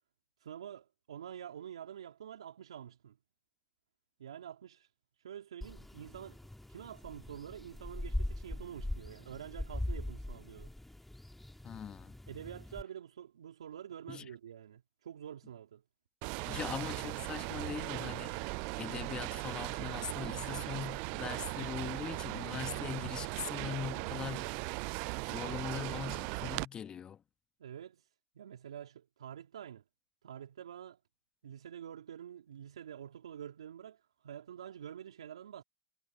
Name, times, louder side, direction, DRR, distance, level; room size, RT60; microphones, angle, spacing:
voice 1, 0.4-3.2 4.2-4.9 5.2-6.4 6.7-10.7 12.3-15.8 27.6-28.1 28.3-29.8 30.2-31.0 31.4-35.6, right 9 dB, 80° right, 3.4 m, -47 dB
sound 1, 5.6-12.8, left 1 dB, 5° left, 1.8 m, -41 dB
voice 2, 11.6-12.1 14.1-14.2 16.5-24.6 24.9-27.2, left 8 dB, 30° left, 1.4 m, -41 dB
sound 2, 16.2-26.7, right 31 dB, 55° right, 0.4 m, -38 dB
hypercardioid pair, 100°, 3 cm